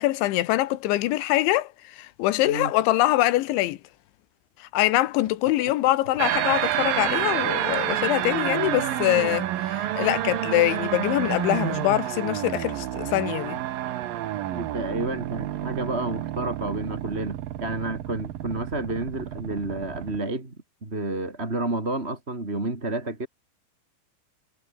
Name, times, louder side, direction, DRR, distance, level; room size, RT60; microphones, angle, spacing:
voice 1, 0.0-3.8 4.6-13.6, left 16 dB, 75° left, 3.4 m, -24 dB
sound 1, 6.2-20.2, right 13 dB, 65° right, 2.4 m, -29 dB
voice 2, 14.5-20.5 20.8-23.3, right 2 dB, 15° right, 2.8 m, -30 dB
omnidirectional pair, 5.6 m